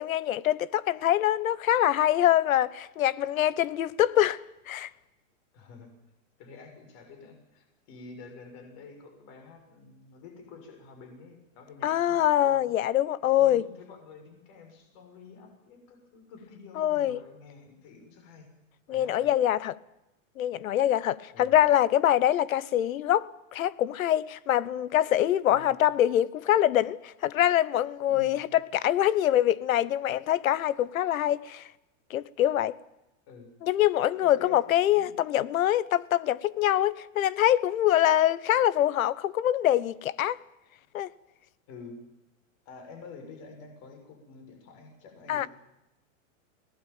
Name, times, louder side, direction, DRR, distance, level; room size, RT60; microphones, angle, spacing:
voice 1, 0.0-4.4 4.7-4.9 11.8-13.6 16.8-17.2 18.9-19.8 20.4-31.6 32.1-32.7 33.6-40.4 40.9-41.1 45.3-45.5, left 12 dB, 85° left, 1.2 m, -24 dB
voice 2, 5.5-5.9 6.4-12.7 13.3-18.5 18.9-19.3 21.3-21.5 25.5-25.7 28.1-28.4 33.3-33.5 34.2-35.1 41.7-42.0 42.6-45.5, left 4 dB, 40° left, 6.5 m, -48 dB
22.5 x 18.5 x 9.1 m
supercardioid pair, 155°, 40 cm